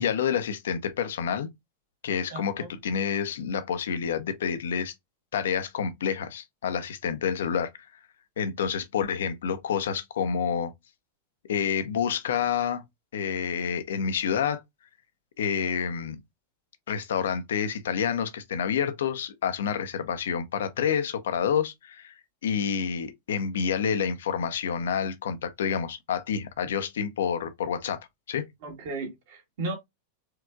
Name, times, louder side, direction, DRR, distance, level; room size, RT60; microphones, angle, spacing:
voice 1, 0.0-1.5 2.0-4.9 5.3-7.7 8.4-10.7 11.4-12.8 13.1-14.6 15.4-16.2 16.9-22.1 22.4-28.0 28.3-28.5, left 7 dB, 60° left, 0.7 m, -28 dB
voice 2, 2.3-2.7 28.6-29.7, right 2 dB, 55° right, 1.9 m, -35 dB
4.7 x 3.4 x 2.3 m
figure-of-eight pair, 90°, 0 cm